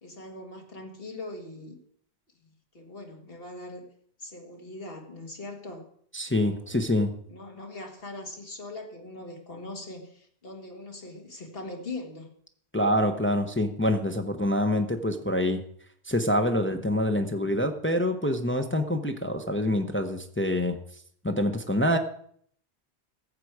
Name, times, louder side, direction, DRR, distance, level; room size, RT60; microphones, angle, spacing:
voice 1, 0.0-1.8 2.7-3.8 4.2-5.9 6.4-6.8 7.3-12.3, left 2 dB, 60° left, 2 dB, 2.2 m, -41 dB
voice 2, 6.1-7.1 12.7-15.6 16.0-20.8 21.2-22.0, left 1 dB, 10° left, 5 dB, 0.8 m, -26 dB
15.0 x 7.6 x 4.8 m, 0.62 s
omnidirectional pair, 1.1 m